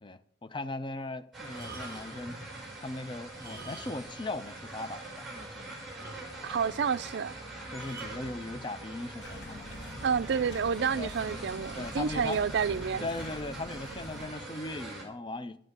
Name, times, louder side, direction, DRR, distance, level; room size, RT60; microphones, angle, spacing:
voice 1, 0.0-2.4 2.8-5.8 6.5-6.8 7.7-10.0 10.9-11.1 11.7-12.5 13.0-15.6, left 2 dB, 25° left, 0.5 m, -39 dB
sound 1, 1.3-15.0, right 2 dB, ahead, 4.7 m, -43 dB
sound 2, 1.4-2.3 3.2-4.2 4.5-4.6 5.2-5.3 5.5-5.6 6.0-6.6 7.8-8.2 9.1-9.3, right 2 dB, 20° right, 4.6 m, -47 dB
voice 2, 6.4-7.3 10.0-13.1, right 6 dB, 65° right, 0.4 m, -29 dB
sound 3, 9.2-14.3, equal, 75° left, 2.3 m, -45 dB
11.5 x 9.6 x 6.5 m
head